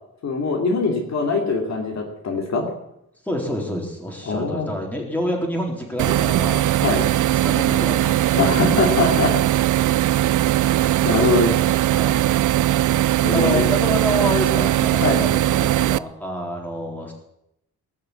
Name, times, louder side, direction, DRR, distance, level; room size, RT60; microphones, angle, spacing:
voice 1, 0.2-2.7 4.3-4.7 6.8-7.0 8.4-9.3 11.0-11.5 13.2-13.7 15.0-15.2, left 3 dB, 55° left, 1 dB, 3.0 m, -22 dB
voice 2, 3.3-6.6 7.4-8.7 11.0-11.2 11.9-12.3 13.3-17.1, equal, 5° left, 0 dB, 4.0 m, -28 dB
sound 1, 6.0-16.0, right 13 dB, 65° right, 0.5 m, -19 dB
19.5 x 6.7 x 8.5 m, 0.79 s
cardioid pair, 115°, 33 cm